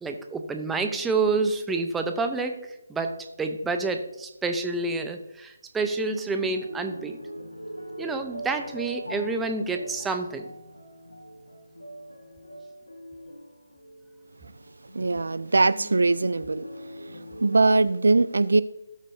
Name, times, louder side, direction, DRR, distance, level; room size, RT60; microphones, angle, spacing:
voice 1, 0.0-3.1 3.4-7.2 8.0-10.5, right 3 dB, 5° right, 0.7 m, -28 dB
sound 1, 6.1-17.7, equal, 90° left, 1.5 m, -42 dB
voice 2, 14.9-16.7 17.0-18.6, right 3 dB, 70° right, 0.3 m, -22 dB
17.5 x 6.1 x 2.7 m
figure-of-eight pair, 150°, 0 cm